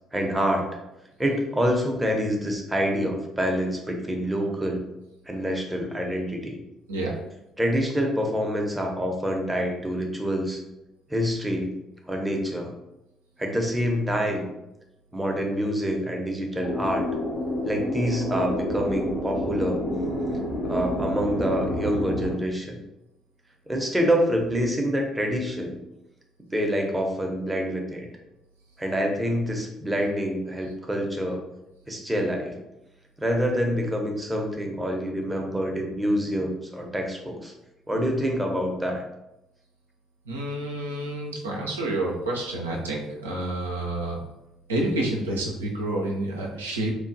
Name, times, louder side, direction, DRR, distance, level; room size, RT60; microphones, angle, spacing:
voice 1, 0.1-0.7 1.2-4.8 5.3-6.6 7.6-10.6 11.1-11.7 12.1-12.7 13.4-14.5 15.1-17.1 17.6-19.8 20.6-22.8 23.7-25.8 26.5-28.1 28.8-31.4 31.9-32.6 33.2-37.5 37.9-39.0, equal, 10° right, 1 dB, 0.6 m, -26 dB
sound 1, 16.6-22.3, left 1 dB, 70° left, 1.0 m, -28 dB
voice 2, 40.3-44.2 44.7-46.9, right 1 dB, 85° right, -2 dB, 0.4 m, -29 dB
2.9 x 2.2 x 2.6 m, 0.90 s
figure-of-eight pair, 50°, 0 cm